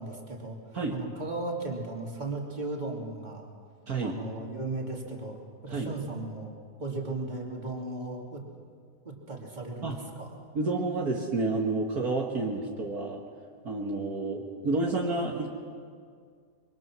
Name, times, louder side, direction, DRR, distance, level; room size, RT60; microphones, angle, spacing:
voice 1, 0.0-3.5 4.0-6.5 6.8-8.4 9.0-10.4, right 2 dB, 25° right, -1 dB, 2.9 m, -36 dB
voice 2, 3.9-4.2 5.7-5.9 9.8-10.0 10.5-13.2 13.7-15.5, right 3 dB, 65° right, 0 dB, 2.1 m, -30 dB
25.5 x 23.5 x 6.2 m, 2.1 s
omnidirectional pair, 1.8 m